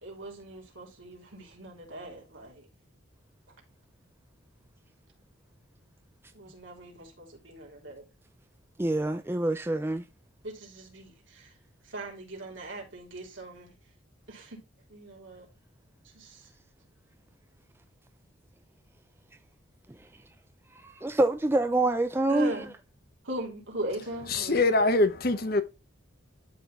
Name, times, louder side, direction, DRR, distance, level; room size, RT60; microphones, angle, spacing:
voice 1, 0.0-2.6 6.3-8.0 10.4-11.5 11.9-13.7 14.3-14.6 14.9-15.5 16.1-16.4 22.3-22.7 23.2-24.9, right 1 dB, 70° right, 3.2 m, -39 dB
voice 2, 8.8-10.0 20.7-22.6, right 2 dB, 10° right, 0.4 m, -26 dB
voice 3, 24.3-25.6, left 2 dB, 45° left, 0.8 m, -23 dB
12.0 x 4.3 x 2.4 m
head